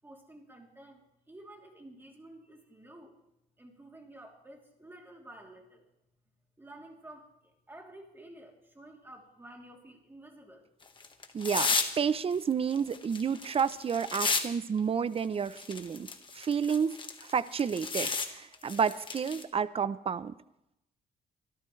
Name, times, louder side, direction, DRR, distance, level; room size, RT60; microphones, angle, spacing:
voice 1, 0.0-3.2 3.6-5.8 6.6-10.7, right 1 dB, 15° right, 1 dB, 3.1 m, -51 dB
sound 1, 10.8-12.0 12.3-14.4 14.8-14.9 15.5-18.3 18.5-19.4, left 4 dB, 30° left, 1.5 m, -32 dB
voice 2, 11.3-16.1 16.3-16.9 17.2-20.3, right 6 dB, 35° right, 16 dB, 0.6 m, -30 dB
25.0 x 13.5 x 3.2 m, 0.85 s
cardioid pair, 130°, 17 cm